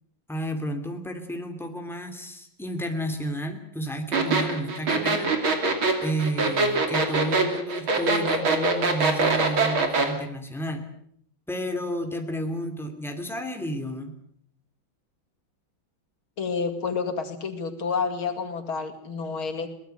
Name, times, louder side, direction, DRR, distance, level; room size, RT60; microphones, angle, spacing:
voice 1, 0.3-5.7 6.0-10.8 11.5-14.1, right 1 dB, ahead, 5 dB, 2.7 m, -31 dB
sound 1, 4.1-10.1, right 3 dB, 80° right, 3.7 m, -23 dB
voice 2, 16.4-19.7, left 5 dB, 90° left, 5 dB, 3.2 m, -29 dB
23.0 x 19.0 x 8.0 m, 0.69 s
omnidirectional pair, 2.2 m